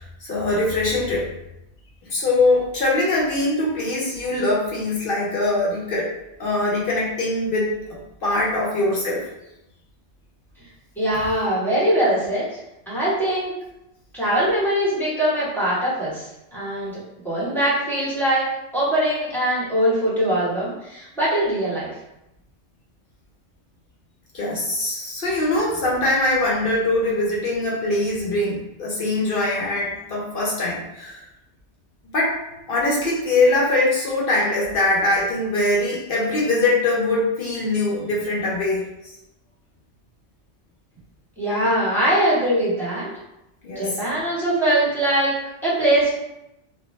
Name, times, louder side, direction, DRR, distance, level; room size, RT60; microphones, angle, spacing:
voice 1, 0.2-1.3 2.0-6.1 6.4-9.3 24.3-31.2 32.1-32.4 32.7-39.1 43.6-43.9, left 2 dB, 55° left, -4 dB, 0.8 m, -22 dB
voice 2, 11.0-12.5 12.9-13.6 14.1-17.0 17.2-18.5 18.7-21.9 41.4-43.1 43.7-45.3 45.6-46.1, right 1 dB, ahead, -10 dB, 1.0 m, -22 dB
2.6 x 2.1 x 3.0 m, 0.87 s
omnidirectional pair, 1.2 m